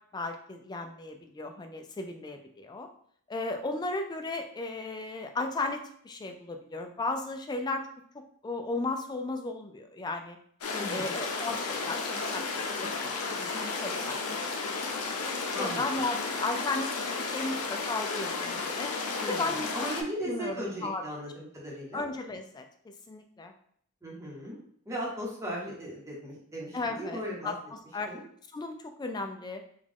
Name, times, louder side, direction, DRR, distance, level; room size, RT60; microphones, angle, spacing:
voice 1, 0.1-2.9 3.3-5.8 6.0-7.8 8.4-10.4 10.9-12.4 12.7-14.2 14.6-14.8 15.6-16.9 17.2-18.9 19.3-19.7 20.3-21.0 21.9-23.5 26.7-28.1 28.5-29.6, left 3 dB, 20° left, 5 dB, 0.3 m, -35 dB
sound 1, 10.6-20.0, left 4 dB, 80° left, 0.6 m, -33 dB
voice 2, 10.7-11.1 15.5-15.8 19.2-22.0 24.0-24.6 24.8-27.5 28.1-28.2, equal, 15° right, -4 dB, 1.0 m, -37 dB
3.7 x 2.4 x 3.5 m, 0.65 s
head